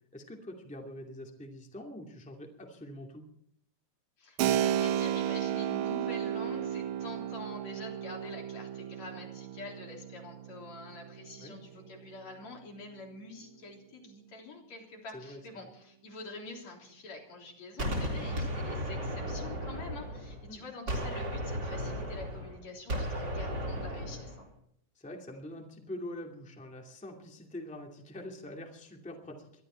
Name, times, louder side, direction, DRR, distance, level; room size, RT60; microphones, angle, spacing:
voice 1, 0.1-3.2 11.4-11.5 15.1-15.7 20.5-20.7 25.0-29.4, left 1 dB, 5° left, 1 dB, 2.0 m, -44 dB
voice 2, 4.2-24.5, left 3 dB, 65° left, 0 dB, 4.8 m, -46 dB
Keyboard (musical), 4.4-12.8, right 10 dB, 75° right, 2.0 m, -34 dB
Gunshot gunfire, 17.8-20.5 20.9-24.4, equal, 35° right, 4.0 m, -35 dB
22.5 x 13.0 x 4.5 m, 0.69 s
omnidirectional pair, 3.3 m